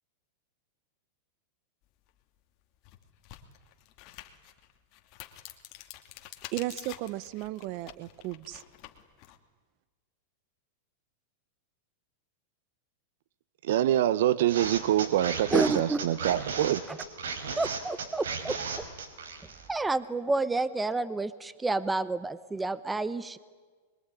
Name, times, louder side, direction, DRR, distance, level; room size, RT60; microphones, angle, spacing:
sound 1, 2.1-2.2 2.7-9.4, left 14 dB, 40° left, 2.5 m, -48 dB
voice 1, 6.5-8.6, right 16 dB, 45° right, 1.0 m, -35 dB
voice 2, 13.6-16.8, right 12 dB, 70° right, 1.1 m, -25 dB
sound 2, 14.5-19.7, right 5 dB, 90° right, 4.5 m, -35 dB
voice 3, 15.5-16.0 17.6-18.5 19.7-23.4, right 3 dB, 10° right, 0.9 m, -29 dB
25.5 x 23.0 x 9.9 m
supercardioid pair, 145°, 0 cm